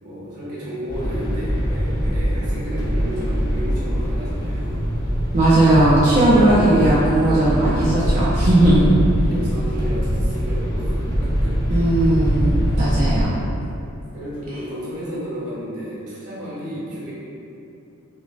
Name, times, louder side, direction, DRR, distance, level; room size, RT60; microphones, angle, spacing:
voice 1, 0.0-4.8 7.6-8.3 9.2-11.8 14.1-17.1, equal, 85° right, -9 dB, 1.2 m, -32 dB
sound 1, 0.9-13.2, equal, 20° left, 0.6 m, -22 dB
voice 2, 5.3-8.9 11.7-13.3, right 1 dB, 30° right, -8 dB, 0.4 m, -17 dB
5.5 x 2.1 x 2.4 m, 2.7 s
head